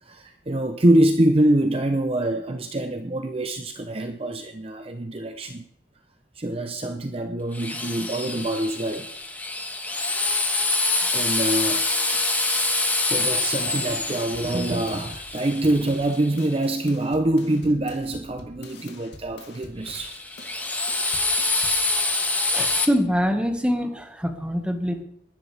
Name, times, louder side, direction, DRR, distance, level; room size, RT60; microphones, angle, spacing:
voice 1, 0.0-5.6 6.4-9.1 11.0-20.2, right 1 dB, 30° right, 0.7 m, -25 dB
Drill, 7.5-16.5 19.9-22.8, left 2 dB, 10° left, 1.4 m, -26 dB
sound 1, 13.9-21.9, left 2 dB, 75° left, 2.4 m, -46 dB
voice 2, 22.5-25.0, equal, 5° right, 1.6 m, -24 dB
20.0 x 11.0 x 3.4 m
head